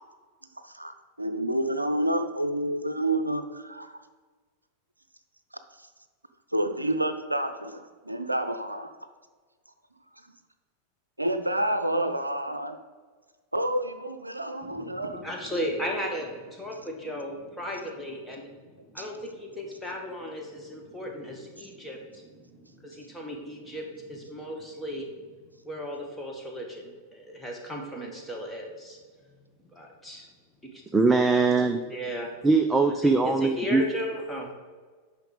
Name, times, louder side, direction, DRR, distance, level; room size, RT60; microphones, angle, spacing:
voice 1, 0.6-3.9 5.8-5.9 6.5-8.9 11.2-12.8 13.5-15.2 19.0-19.1, right 1 dB, 85° right, 9 dB, 0.6 m, -29 dB
voice 2, 14.6-25.4 25.6-29.0 29.7-30.3 30.6-30.8 31.2-31.5 31.9-32.3 32.9-34.5, equal, 5° left, -1 dB, 1.8 m, -36 dB
voice 3, 30.9-31.8 32.4-33.8, right 3 dB, 10° right, 6 dB, 0.5 m, -21 dB
9.0 x 5.8 x 5.0 m, 1.4 s
figure-of-eight pair, 90°, 0 cm